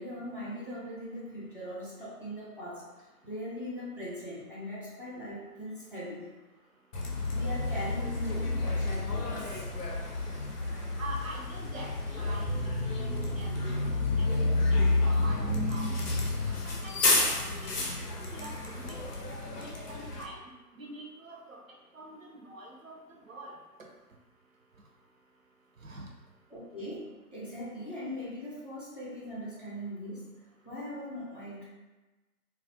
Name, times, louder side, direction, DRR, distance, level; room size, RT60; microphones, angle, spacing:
voice 1, 0.0-6.3 7.3-9.6 26.5-30.3 30.6-31.6, equal, 35° left, -8 dB, 0.5 m, -40 dB
Bus, 6.9-20.2, left 2 dB, 80° left, 0.7 m, -30 dB
voice 2, 11.0-14.3 14.7-15.9 16.5-19.1 19.6-20.4 20.7-21.6 21.9-23.6 25.8-26.1, right 2 dB, 60° right, -1 dB, 0.6 m, -45 dB
2.3 x 2.0 x 2.7 m, 1.1 s
figure-of-eight pair, 145°, 46 cm